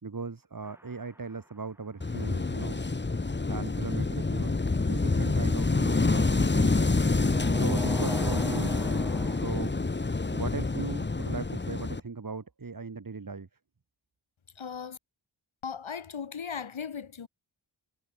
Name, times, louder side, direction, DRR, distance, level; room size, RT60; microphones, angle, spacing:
voice 1, 0.0-2.8 3.5-4.6 4.9-6.8 7.5-8.8 9.3-9.8 10.3-13.5, right 4 dB, 45° right, 2.4 m, -38 dB
sound 1, 0.6-1.5 5.1-9.4, equal, 5° right, 3.7 m, -42 dB
Wind / Waves surf, 2.0-12.0, left 3 dB, 25° left, 1.2 m, -27 dB
voice 2, 14.5-15.0 15.6-17.3, left 6 dB, 80° left, 2.5 m, -37 dB
cardioid pair, 50°, 47 cm